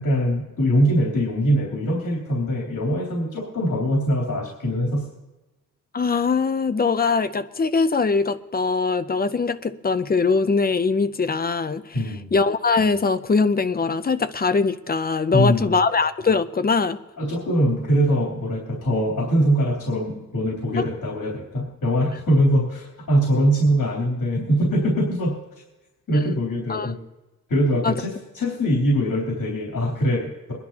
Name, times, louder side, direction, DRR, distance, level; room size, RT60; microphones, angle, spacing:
voice 1, 0.0-5.1 11.9-12.3 15.3-15.8 17.2-25.4 26.1-27.0 27.5-30.5, equal, 70° left, -3 dB, 3.3 m, -22 dB
voice 2, 5.9-11.9 12.3-17.0 26.1-26.3 26.7-26.9 27.8-27.9, left 4 dB, 30° left, 11 dB, 0.5 m, -22 dB
23.5 x 11.0 x 2.9 m, 1.1 s
wide cardioid pair, 155°, 32 cm